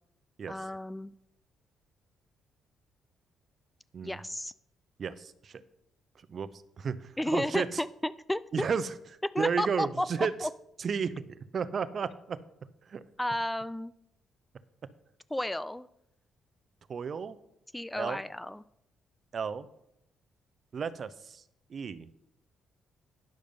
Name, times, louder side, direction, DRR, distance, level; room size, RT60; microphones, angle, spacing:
voice 1, 0.5-1.1 4.0-4.5 7.2-8.4 9.3-10.1 10.4-10.5 13.2-13.9 15.3-15.9 17.7-18.6, left 1 dB, 10° left, 17 dB, 0.3 m, -32 dB
voice 2, 5.0-5.6 6.3-6.5 6.8-7.8 8.5-8.9 9.4-10.3 10.8-11.1 11.5-12.4 12.9-13.0 16.9-17.4 18.0-18.2 19.3-19.7 20.7-21.4 21.7-22.1, right 6 dB, 50° right, 14 dB, 0.6 m, -32 dB
10.5 x 6.5 x 5.2 m, 0.78 s
cardioid pair, 90°, 0 cm